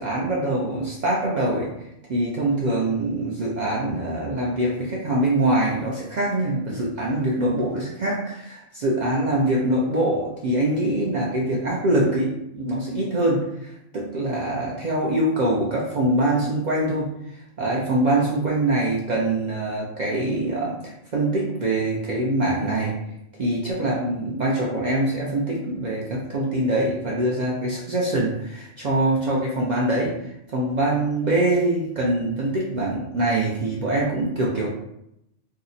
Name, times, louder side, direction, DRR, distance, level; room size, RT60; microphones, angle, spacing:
voice 1, 0.0-1.7 2.1-17.1 17.6-23.0 23.4-30.1 30.5-34.7, right 1 dB, 60° right, -4 dB, 0.4 m, -24 dB
2.8 x 2.0 x 3.9 m, 0.80 s
omnidirectional pair, 1.2 m